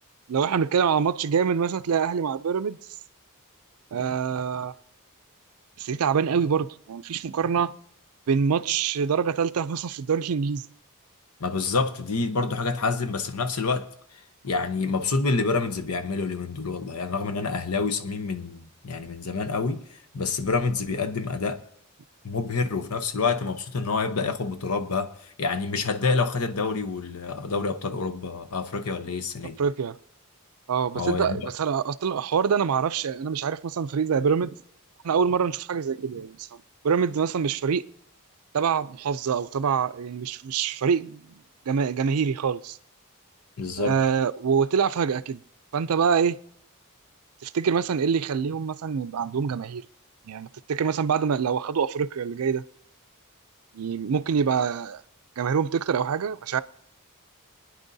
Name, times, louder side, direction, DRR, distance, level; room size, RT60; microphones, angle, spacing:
voice 1, 0.3-2.8 3.9-4.7 5.8-7.7 8.3-10.6 29.6-30.0 30.7-34.6 35.0-37.9 38.5-41.3 41.7-42.8 43.8-45.4 45.7-46.4 47.4-49.9 50.3-52.6 53.7-55.0 55.4-56.6, right 6 dB, 75° right, 0.4 m, -25 dB
voice 2, 11.4-13.9 14.4-19.8 20.1-21.6 22.2-29.6 30.9-31.5 43.6-44.0, left 4 dB, 85° left, 0.9 m, -27 dB
23.0 x 9.7 x 2.7 m
head